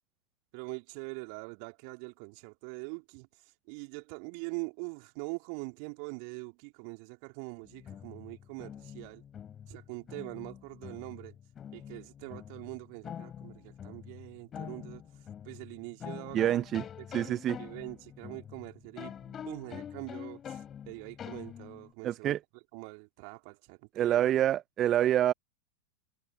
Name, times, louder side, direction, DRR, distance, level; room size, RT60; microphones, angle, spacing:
voice 1, 0.5-9.2 9.7-11.4 11.7-15.0 15.4-16.7 17.0-22.3 22.7-24.3, right 40 dB or more, 45° right, 3.1 m, -43 dB
sound 1, 7.7-21.9, left 9 dB, 25° left, 4.2 m, -45 dB
voice 2, 16.3-16.8 17.1-17.6 22.0-22.4 24.0-25.3, right 11 dB, 30° right, 0.8 m, -26 dB
figure-of-eight pair, 90°, 0 cm